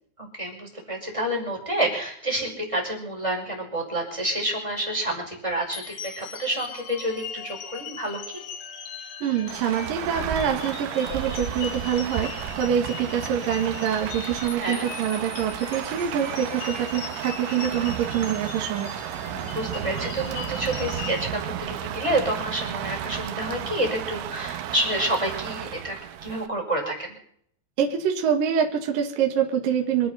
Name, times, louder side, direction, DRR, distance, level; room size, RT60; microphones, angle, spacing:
voice 1, 0.2-8.4 14.6-14.9 19.5-26.0 26.2-27.2, right 1 dB, 5° right, -1 dB, 5.3 m, -28 dB
sound 1, 5.7-21.2, left 8 dB, 60° left, 3.7 m, -40 dB
voice 2, 9.2-18.9 27.8-30.1, right 8 dB, 55° right, 3 dB, 2.9 m, -25 dB
Rain, 9.5-26.5, right 11 dB, 80° right, 3.6 m, -33 dB
27.0 x 9.4 x 5.7 m, 0.65 s
omnidirectional pair, 5.6 m